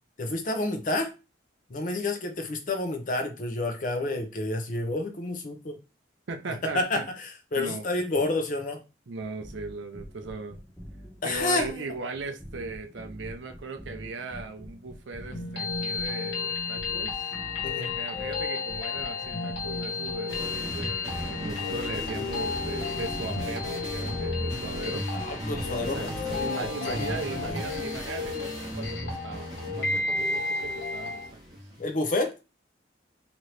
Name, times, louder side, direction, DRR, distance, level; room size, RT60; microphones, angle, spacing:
voice 1, 0.2-1.1 1.7-5.8 6.7-8.8 11.2-11.9 17.6-18.0 25.1-27.6 31.8-32.3, left 2 dB, 40° left, 0.6 m, -30 dB
voice 2, 6.3-7.0 7.6-7.8 9.1-10.6 11.2-17.3 18.0-25.1 25.8-26.1 26.4-31.4, right 3 dB, 75° right, 0.5 m, -38 dB
sound 1, 9.2-28.3, equal, 5° right, 0.4 m, -45 dB
sound 2, 15.3-31.3, left 4 dB, 65° left, 1.0 m, -33 dB
sound 3, 20.3-31.8, equal, 20° right, 1.0 m, -36 dB
3.0 x 2.6 x 3.1 m
head